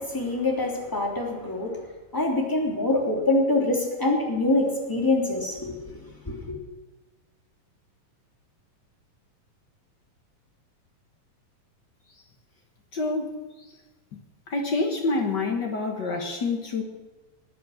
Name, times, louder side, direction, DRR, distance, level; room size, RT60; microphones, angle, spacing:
voice 1, 0.0-1.8 2.1-6.5, left 2 dB, 5° left, 0 dB, 2.2 m, -25 dB
voice 2, 12.9-13.4 14.1-14.2 14.5-16.8, left 3 dB, 55° left, 3 dB, 1.2 m, -27 dB
21.0 x 9.4 x 6.5 m, 1.3 s
omnidirectional pair, 4.1 m